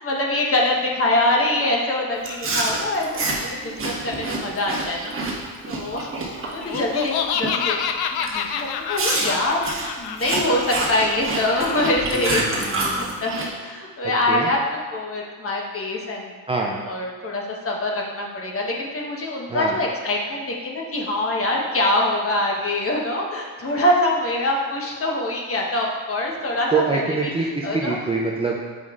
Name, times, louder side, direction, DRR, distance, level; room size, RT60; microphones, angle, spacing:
voice 1, 0.0-3.3 3.8-5.1 5.7-6.1 6.5-14.6 14.9-16.3 16.8-27.3 27.6-28.0, left 1 dB, 35° left, -1 dB, 1.2 m, -24 dB
Chewing mastication, 2.2-7.1 7.4-7.7 8.2-8.4 8.9-13.5, right 2 dB, 30° right, 1.4 m, -27 dB
Laughter, 6.6-12.2, left 7 dB, 65° left, 0.5 m, -28 dB
voice 2, 12.1-13.2 14.0-14.5 16.5-16.8 19.5-19.7 26.7-28.6, right 4 dB, 15° right, -2 dB, 0.5 m, -25 dB
7.9 x 5.3 x 2.5 m, 1.5 s
cardioid pair, 100°, 41 cm